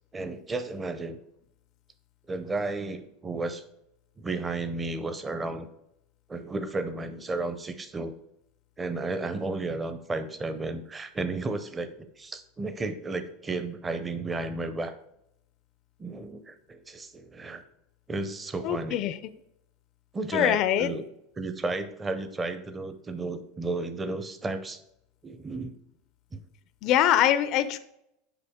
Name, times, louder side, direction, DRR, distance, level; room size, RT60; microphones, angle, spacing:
voice 1, 0.1-1.2 2.3-3.6 4.2-5.7 6.3-8.1 8.8-14.9 16.0-17.6 18.1-19.0 20.1-21.0 21.4-24.8 25.2-25.7 26.3-26.4, right 3 dB, 15° right, 10 dB, 0.5 m, -33 dB
voice 2, 18.6-19.2 20.3-20.9 26.8-27.8, left 11 dB, 45° left, 13 dB, 0.4 m, -23 dB
6.9 x 4.7 x 3.6 m, 0.79 s
supercardioid pair, 145°, 0 cm